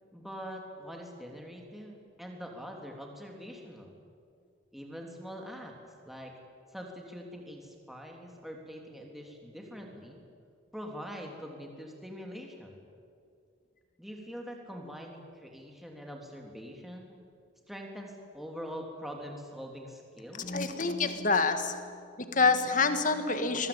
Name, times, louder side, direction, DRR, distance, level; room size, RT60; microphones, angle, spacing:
voice 1, 0.1-3.9 4.7-5.7 6.0-6.3 6.7-10.2 10.7-12.8 14.0-17.2 17.7-20.5, equal, ahead, 1 dB, 3.4 m, -43 dB
voice 2, 20.4-21.9 22.2-23.7, left 4 dB, 40° left, 8 dB, 1.9 m, -27 dB
25.0 x 21.5 x 8.9 m, 2.3 s
head